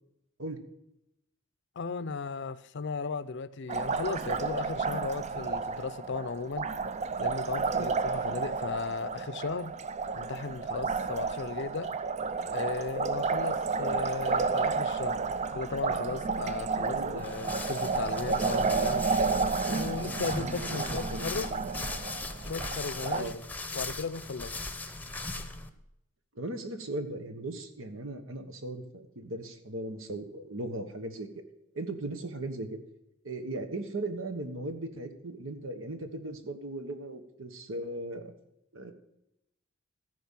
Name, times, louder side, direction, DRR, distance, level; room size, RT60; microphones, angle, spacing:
voice 1, 1.8-6.7 7.2-9.7 10.2-11.9 12.5-15.2 15.5-19.1 19.7-21.5 22.4-23.3 23.7-24.6, left 4 dB, 60° left, 0.5 m, -36 dB
Liquid, 3.7-23.2, right 4 dB, 35° right, 0.4 m, -31 dB
voice 2, 16.9-17.2 20.3-21.3 23.1-23.3 26.3-31.3 31.7-32.8 33.2-38.3 38.7-38.9, right 2 dB, 85° right, 1.4 m, -38 dB
sound 1, 17.2-25.7, left 2 dB, 10° left, 0.8 m, -38 dB
14.0 x 5.1 x 7.4 m
head